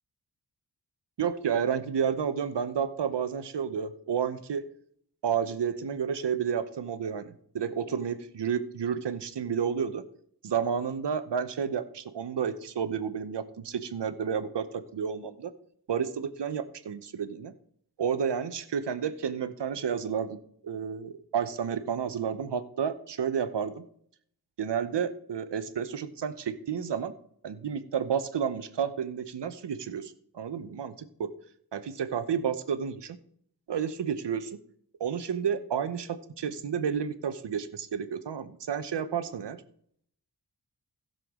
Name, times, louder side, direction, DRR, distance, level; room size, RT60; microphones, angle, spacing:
voice 1, 1.2-4.6 5.2-10.0 10.4-15.5 15.9-17.5 18.0-20.4 20.6-23.8 24.6-27.1 27.4-31.3 31.7-33.2 33.7-34.5 35.0-39.6, right 7 dB, 75° right, 12 dB, 0.9 m, -31 dB
16.0 x 6.8 x 3.7 m, 0.65 s
wide cardioid pair, 110°, 41 cm